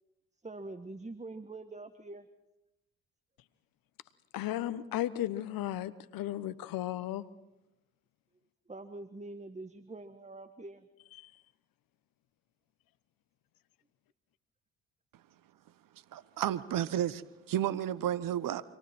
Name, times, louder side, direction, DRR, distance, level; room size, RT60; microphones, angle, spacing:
voice 1, 0.4-2.3 8.7-10.9, right 2 dB, 20° right, 1.5 m, -44 dB
voice 2, 4.3-7.2 11.2-11.3, left 13 dB, 65° left, 1.1 m, -35 dB
voice 3, 16.1-17.2 17.5-18.6, right 11 dB, 60° right, 1.1 m, -31 dB
29.0 x 26.5 x 4.5 m
hypercardioid pair, 50°, 37 cm